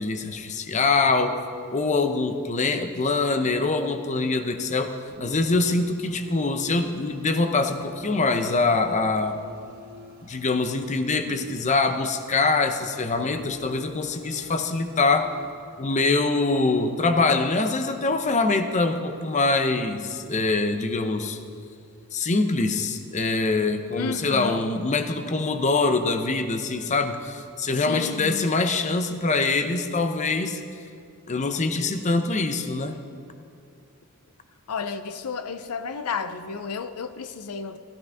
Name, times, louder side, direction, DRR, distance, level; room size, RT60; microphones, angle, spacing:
voice 1, 0.0-1.4 1.7-4.9 5.2-9.4 10.2-15.3 15.8-21.4 22.1-30.6 31.3-33.0, left 3 dB, 35° left, 8 dB, 0.7 m, -24 dB
sound 1, 5.1-11.6 13.2-15.5, left 1 dB, 45° right, 1.4 m, -45 dB
voice 2, 24.0-24.6 27.7-28.5 34.7-37.8, left 5 dB, 85° left, 11 dB, 0.5 m, -32 dB
15.5 x 13.0 x 3.5 m, 2.4 s
head